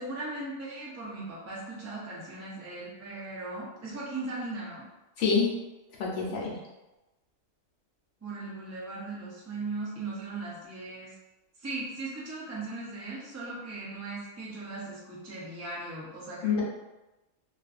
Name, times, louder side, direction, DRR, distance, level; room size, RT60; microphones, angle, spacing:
voice 1, 0.0-4.8 8.2-11.1 11.6-16.6, right 2 dB, 20° right, -6 dB, 0.4 m, -38 dB
voice 2, 5.2-5.5 6.0-6.6 16.4-16.6, left 5 dB, 65° left, -3 dB, 0.9 m, -26 dB
2.5 x 2.5 x 2.4 m, 1.0 s
omnidirectional pair, 1.4 m